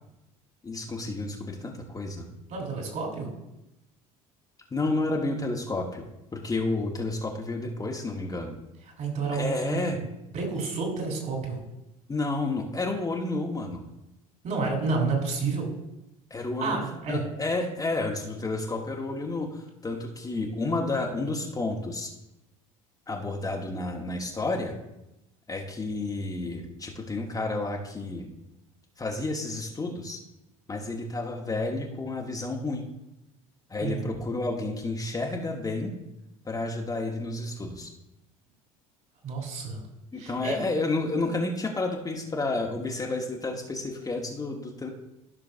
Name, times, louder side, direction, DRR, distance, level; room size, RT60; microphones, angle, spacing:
voice 1, 0.6-2.3 4.7-6.1 6.3-8.5 9.3-10.0 12.1-13.8 16.3-16.8 17.1-22.1 23.1-24.7 25.5-28.3 29.0-30.2 30.7-32.9 33.7-35.9 36.4-37.9 40.1-44.9, left 2 dB, 20° left, 0 dB, 1.2 m, -30 dB
voice 2, 2.5-3.3 9.0-10.0 10.3-11.6 14.4-15.7 16.6-17.2 33.8-34.1 39.2-39.8 40.2-40.6, right 4 dB, 45° right, 0 dB, 3.5 m, -30 dB
14.5 x 6.0 x 2.6 m, 0.90 s
figure-of-eight pair, 65°, 18 cm